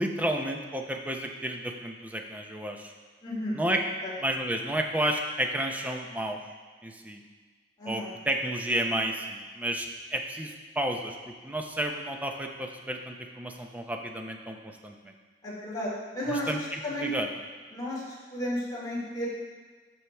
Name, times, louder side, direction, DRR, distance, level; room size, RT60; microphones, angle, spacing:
voice 1, 0.0-2.9 3.5-3.8 4.2-6.4 6.8-7.2 7.9-15.1 16.2-17.3, right 1 dB, 10° right, 3 dB, 0.6 m, -31 dB
voice 2, 3.2-3.6 4.0-4.1 7.8-8.1 15.4-16.5 16.8-17.1 17.7-19.3, equal, 25° left, -7 dB, 2.5 m, -33 dB
13.5 x 4.6 x 3.4 m, 1.4 s
head